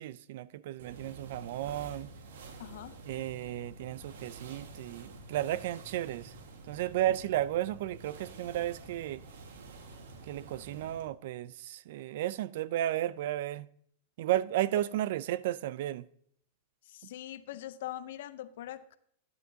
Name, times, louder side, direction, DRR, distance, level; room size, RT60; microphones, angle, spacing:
voice 1, 0.0-2.1 3.1-6.3 6.7-9.2 10.3-13.7 14.2-16.1, right 13 dB, 65° right, 0.4 m, -33 dB
sound 1, 0.8-11.1, right 3 dB, 80° right, 1.6 m, -49 dB
voice 2, 2.6-2.9 16.8-19.0, left 13 dB, 70° left, 0.6 m, -42 dB
11.5 x 9.6 x 2.8 m
supercardioid pair, 140°, 0 cm